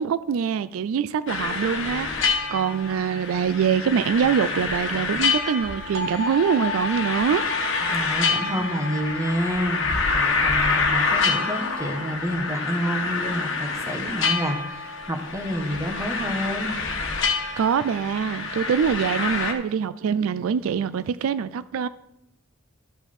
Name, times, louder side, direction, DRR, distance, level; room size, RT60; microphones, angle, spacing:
voice 1, 0.0-7.4 17.6-21.9, right 7 dB, 85° right, 0.3 m, -24 dB
sound 1, 1.3-19.5, left 4 dB, 65° left, 1.3 m, -27 dB
sound 2, 5.9-11.8, equal, 65° right, 0.9 m, -34 dB
voice 2, 7.9-16.7, equal, 15° right, 1.2 m, -29 dB
12.5 x 5.7 x 4.3 m
head